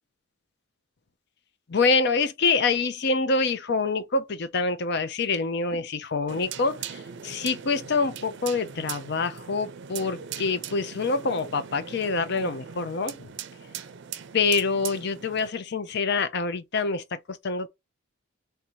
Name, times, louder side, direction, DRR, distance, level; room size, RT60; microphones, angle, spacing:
voice 1, 1.7-13.3 14.3-17.7, left 4 dB, 55° left, 0.6 m, -26 dB
sound 1, 6.3-15.5, right 8 dB, 60° right, 0.5 m, -40 dB
3.4 x 2.7 x 4.5 m
head